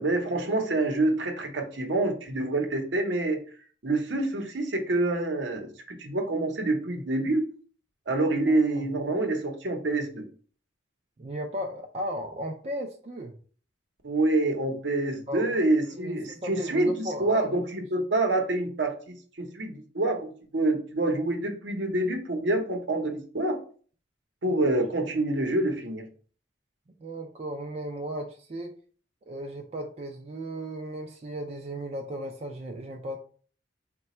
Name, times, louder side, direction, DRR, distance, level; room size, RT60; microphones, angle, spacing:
voice 1, 0.0-3.4 3.8-7.5 8.1-10.3 14.0-23.6 24.4-26.1, right 2 dB, 70° right, 4 dB, 0.8 m, -27 dB
voice 2, 8.5-9.1 11.2-13.3 15.3-17.5 24.5-24.6 27.0-28.8 29.3-33.2, right 1 dB, 35° right, 2 dB, 0.4 m, -36 dB
3.9 x 2.2 x 4.2 m, 0.42 s
head